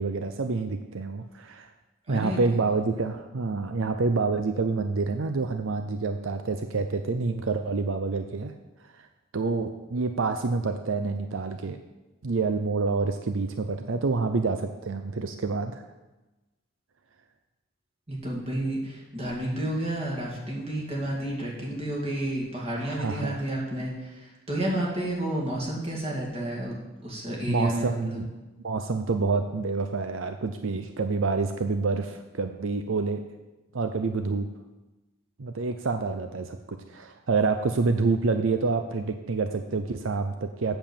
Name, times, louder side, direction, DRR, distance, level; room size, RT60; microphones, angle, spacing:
voice 1, 0.0-1.7 2.1-8.5 9.0-9.1 9.3-11.8 12.2-15.8 22.8-23.4 27.5-28.3 28.6-33.2 33.7-34.5 35.4-40.8, right 4 dB, 80° right, 7 dB, 0.6 m, -27 dB
voice 2, 2.1-2.4 18.1-26.8 27.0-28.2, right 1 dB, 30° right, -3 dB, 2.4 m, -31 dB
7.9 x 6.9 x 7.2 m, 1.1 s
head